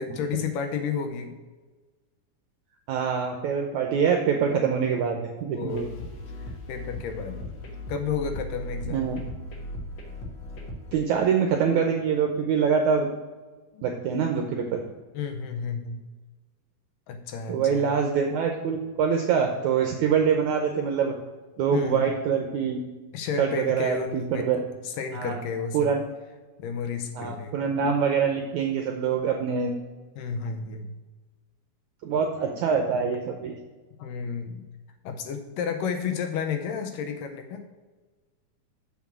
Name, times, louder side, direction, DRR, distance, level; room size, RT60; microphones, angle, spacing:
voice 1, 0.0-1.3 5.5-5.9 6.4-7.6 7.9-9.1 13.7-13.9 15.1-16.0 17.1-17.9 21.7-22.0 23.1-25.9 26.6-27.6 30.2-30.9 32.5-32.6 34.0-34.7 35.0-37.7, left 6 dB, 75° left, 6 dB, 2.2 m, -32 dB
voice 2, 2.9-5.8 8.9-9.2 10.9-13.1 13.8-14.8 17.5-21.1 21.6-22.8 23.4-24.6 25.1-25.5 25.7-26.0 27.2-29.7 32.0-33.5, right 6 dB, 80° right, 3 dB, 1.7 m, -25 dB
sound 1, 5.7-10.9, left 1 dB, 50° left, 1.5 m, -37 dB
6.9 x 6.3 x 5.9 m, 1.3 s
omnidirectional pair, 4.2 m